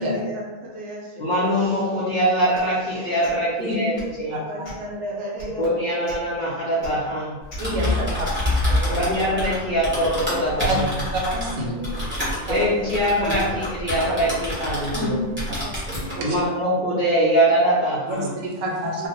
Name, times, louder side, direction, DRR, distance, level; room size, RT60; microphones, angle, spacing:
voice 1, 0.0-1.6 2.6-2.7 3.2-3.5 4.2-5.6 7.9-9.3 10.3-10.7 11.6-12.0 12.5-13.2 13.5-14.0 14.6-15.2 15.5-16.6 19.0-19.1, right 1 dB, 65° right, -4 dB, 0.8 m, -37 dB
voice 2, 1.2-4.4 5.6-7.4 8.9-10.9 12.5-15.2 16.2-18.3, equal, 80° left, -7 dB, 0.4 m, -23 dB
sound 1, 2.5-2.7 3.2-3.4 3.9-4.2 4.6-4.9 5.4-5.5 6.0-6.2 6.8-6.9 7.5-7.7, equal, 50° left, 0.8 m, -38 dB
Typing, 7.4-15.1 15.4-16.2, left 1 dB, 15° right, 0.5 m, -27 dB
voice 3, 7.6-8.3 8.9-9.0 10.7-10.8 11.1-11.7 12.5-12.6 14.0-14.1 14.9-15.1 15.7-15.8 16.2-16.4 18.1-19.1, right 1 dB, 80° right, -1 dB, 1.0 m, -27 dB
2.5 x 2.1 x 2.7 m, 1.3 s
omnidirectional pair, 1.5 m